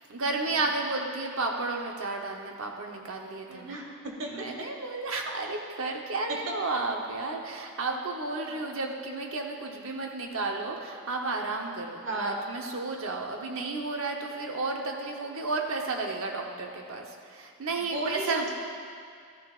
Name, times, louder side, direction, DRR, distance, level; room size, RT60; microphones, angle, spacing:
voice 1, 0.1-3.8 4.3-18.5, right 3 dB, 80° right, 2 dB, 1.0 m, -32 dB
voice 2, 3.5-4.5 8.4-8.6 12.0-12.4 17.9-18.5, right 2 dB, 65° right, 0 dB, 1.4 m, -35 dB
13.5 x 9.5 x 2.5 m, 2.3 s
head